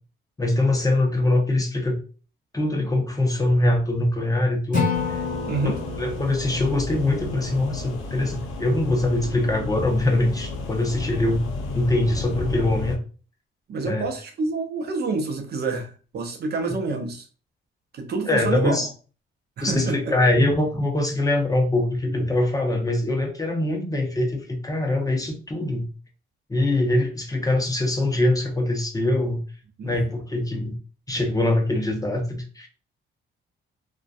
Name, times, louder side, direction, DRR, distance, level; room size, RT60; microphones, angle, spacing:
voice 1, 0.4-2.0 2.5-5.2 5.6-11.5 11.7-13.0 13.8-14.0 18.3-18.9 19.6-25.9 26.5-29.4 29.8-30.8 31.1-32.7, left 1 dB, 15° left, 2 dB, 0.5 m, -23 dB
Acoustic guitar / Strum, 4.7-7.9, left 4 dB, 40° left, 1.4 m, -30 dB
sound 1, 4.9-13.0, left 3 dB, 80° left, 0.6 m, -32 dB
voice 2, 5.5-5.8 13.7-17.3 17.9-18.8 19.6-20.0 29.8-29.9, right 4 dB, 50° right, 4 dB, 0.6 m, -28 dB
2.5 x 2.2 x 2.3 m, 0.37 s
cardioid pair, 105°, 21 cm